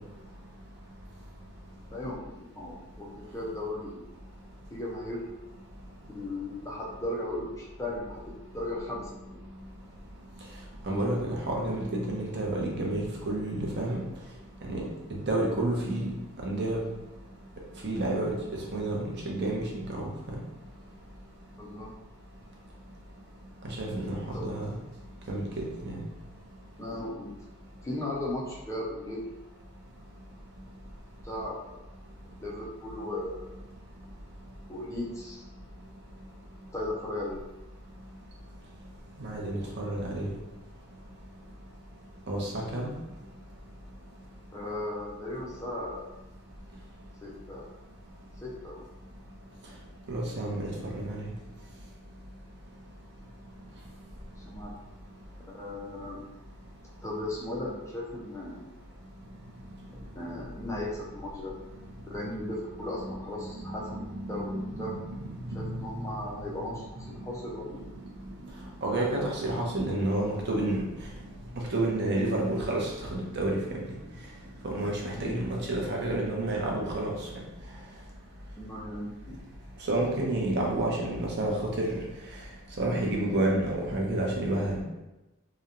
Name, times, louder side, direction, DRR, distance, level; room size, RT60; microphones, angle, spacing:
voice 1, 1.9-4.0 4.7-5.3 6.1-9.4 21.6-21.9 24.3-24.5 26.8-27.3 27.8-29.3 31.2-31.7 32.4-33.5 34.7-35.4 36.7-37.4 44.5-46.1 47.2-47.7 48.4-48.8 54.4-54.8 55.5-56.2 57.0-58.7 60.1-61.5 62.1-64.9 65.5-67.8 75.1-75.4 78.6-79.4, left 1 dB, 15° left, -4 dB, 0.3 m, -36 dB
voice 2, 10.8-14.0 14.7-14.8 15.1-16.1 16.4-16.8 17.8-18.3 18.7-19.0 19.3-20.4 23.6-24.7 25.3-26.0 39.2-40.3 42.3-42.9 50.1-51.3 63.5-65.9 68.8-70.8 71.7-73.6 74.6-77.1 79.9-81.5 81.8-82.0 82.8-84.8, right 1 dB, 50° right, -2 dB, 0.5 m, -30 dB
2.8 x 2.1 x 2.4 m, 1.0 s
head